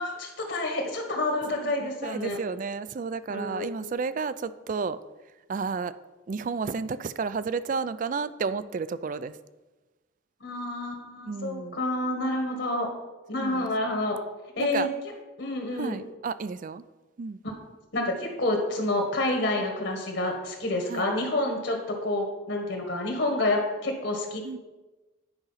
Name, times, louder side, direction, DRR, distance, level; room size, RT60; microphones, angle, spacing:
voice 1, 0.0-2.4 3.3-3.7 10.4-12.9 13.3-14.2 14.6-14.9 15.4-16.0 17.4-17.5 17.9-24.4, left 2 dB, 65° left, 3 dB, 1.5 m, -28 dB
voice 2, 2.0-5.0 5.5-5.9 6.3-9.3 11.2-11.8 13.3-13.7 14.6-14.9 15.8-16.8 17.2-17.4 20.9-21.1 24.4-24.6, right 5 dB, 40° right, 15 dB, 0.3 m, -31 dB
9.9 x 5.0 x 5.7 m, 1.2 s
head